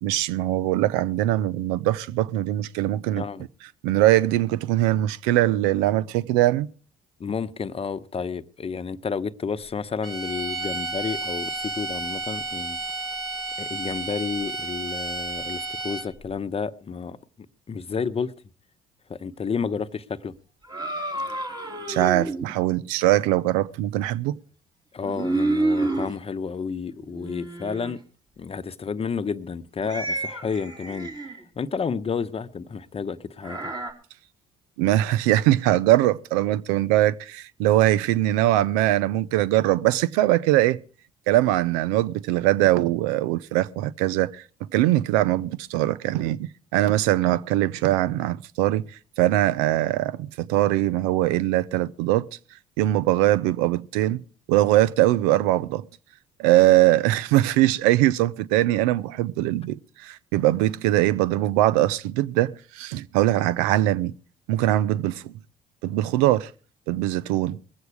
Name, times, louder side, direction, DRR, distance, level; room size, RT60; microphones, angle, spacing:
voice 1, 0.0-3.2 3.8-6.7 21.9-24.4 34.8-40.8 41.3-44.4 44.7-48.8 49.2-52.3 52.8-54.2 54.5-55.8 56.4-64.1 64.5-65.3 65.8-66.5 66.9-67.6, right 15 dB, 85° right, 0.5 m, -22 dB
voice 2, 7.2-12.8 13.6-17.2 17.7-18.3 19.1-20.3 24.9-28.0 28.4-33.7, left 5 dB, 35° left, 0.9 m, -31 dB
sound 1, 10.0-16.3, right 3 dB, ahead, 2.0 m, -32 dB
sound 2, 20.6-22.5 25.0-26.1 27.0-27.9 29.8-31.4 33.4-33.9, right 2 dB, 25° right, 3.1 m, -29 dB
21.0 x 8.1 x 4.8 m
supercardioid pair, 65°, 17 cm